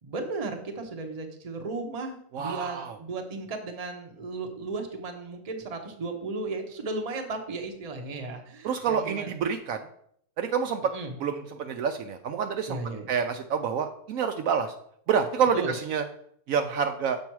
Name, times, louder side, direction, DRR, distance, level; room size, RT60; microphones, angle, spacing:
voice 1, 0.0-9.3 10.9-11.2 12.7-13.1 15.5-15.7, right 3 dB, 30° right, 4 dB, 0.8 m, -35 dB
voice 2, 2.3-3.0 8.6-9.9 10.4-10.8 11.2-12.8 13.1-14.7 15.1-16.0 16.5-17.2, right 7 dB, 70° right, 7 dB, 0.9 m, -28 dB
7.2 x 5.3 x 4.6 m, 0.67 s
omnidirectional pair, 1.6 m